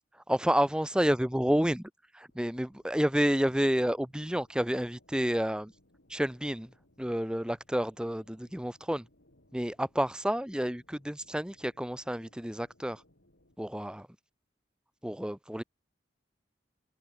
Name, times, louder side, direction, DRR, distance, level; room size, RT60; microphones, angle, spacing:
voice 1, 0.1-5.7 6.1-6.7 7.0-9.1 9.5-13.0 13.6-14.1 15.0-15.6, equal, 5° right, 0.6 m, -30 dB
sound 1, 2.3-13.6, left 1 dB, 85° left, 5.7 m, -66 dB
head